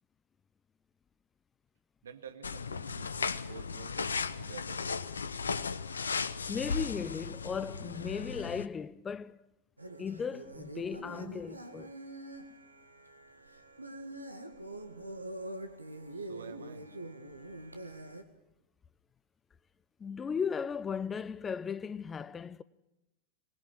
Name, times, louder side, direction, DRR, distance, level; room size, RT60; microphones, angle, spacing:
voice 1, 2.0-4.9 16.1-16.9, right 7 dB, 65° right, 2.1 m, -50 dB
sound 1, 2.4-8.7, left 5 dB, 70° left, 0.9 m, -36 dB
voice 2, 6.5-9.4 10.0-11.9 20.0-22.6, left 6 dB, 20° left, 0.7 m, -36 dB
sound 2, 9.8-18.2, right 1 dB, 85° right, 2.0 m, -45 dB
25.5 x 20.5 x 6.0 m
figure-of-eight pair, 90°, 0 cm